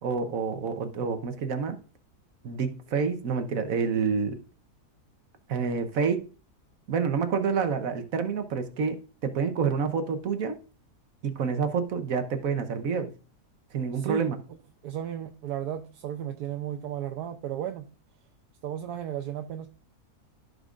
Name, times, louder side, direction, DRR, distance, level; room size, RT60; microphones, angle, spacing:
voice 1, 0.0-1.8 2.4-4.4 5.5-6.2 6.9-10.6 11.2-13.1 13.7-14.4, right 6 dB, 65° right, 1.3 m, -28 dB
voice 2, 13.9-14.3 14.8-17.9 18.6-19.7, right 10 dB, 85° right, 1.2 m, -34 dB
15.0 x 5.3 x 2.5 m
omnidirectional pair, 1.7 m